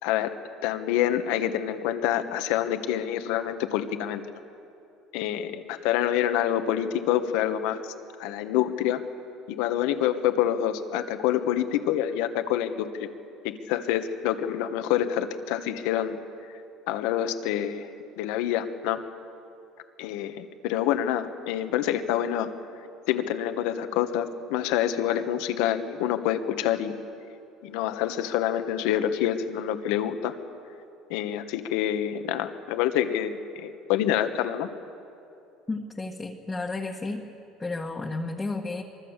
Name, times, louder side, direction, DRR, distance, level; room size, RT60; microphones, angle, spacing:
voice 1, 0.0-4.2 5.1-7.9 8.2-9.0 9.5-13.1 13.4-16.2 16.9-19.0 20.0-22.5 23.1-26.9 27.6-30.3 31.1-34.7, left 11 dB, 80° left, 8 dB, 1.5 m, -27 dB
voice 2, 35.7-37.2 37.6-38.8, left 3 dB, 15° left, -2 dB, 1.7 m, -32 dB
24.5 x 24.0 x 7.4 m, 2.7 s
cardioid pair, 120°, 0 cm